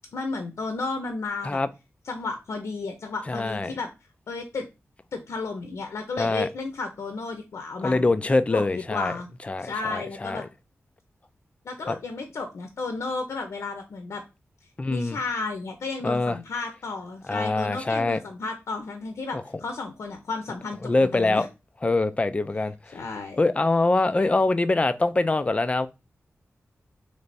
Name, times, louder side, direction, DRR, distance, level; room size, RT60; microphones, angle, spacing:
voice 1, 0.1-1.6 2.0-3.9 4.3-4.7 5.1-8.1 8.5-9.3 9.6-10.5 11.6-14.2 14.9-21.5 22.9-23.4, left 3 dB, 90° left, 0.6 m, -33 dB
voice 2, 3.3-3.7 6.2-6.5 7.8-9.1 9.5-10.4 11.9-12.0 14.8-15.2 16.0-16.4 17.3-18.2 19.3-19.4 20.8-21.5 21.8-22.7 23.4-25.9, left 2 dB, 25° left, 0.3 m, -24 dB
3.3 x 3.2 x 4.0 m
wide cardioid pair, 120°, 5 cm